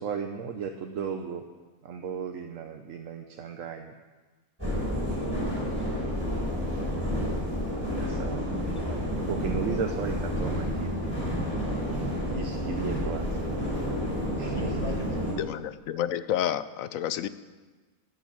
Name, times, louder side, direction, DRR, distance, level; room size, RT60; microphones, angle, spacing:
voice 1, 0.0-1.4 1.8-3.9 8.0-8.8 9.3-11.0 12.2-13.4 14.4-14.8, right 6 dB, 65° right, 4 dB, 1.2 m, -35 dB
sound 1, 4.6-15.3, equal, 10° right, 5.6 m, -30 dB
voice 2, 5.1-7.2 7.7-9.2 11.4-12.4 14.4-15.3, left 1 dB, 25° left, -1 dB, 2.4 m, -44 dB
voice 3, 15.4-17.3, left 10 dB, 75° left, 14 dB, 1.0 m, -30 dB
12.0 x 10.5 x 8.6 m, 1.3 s
omnidirectional pair, 1.5 m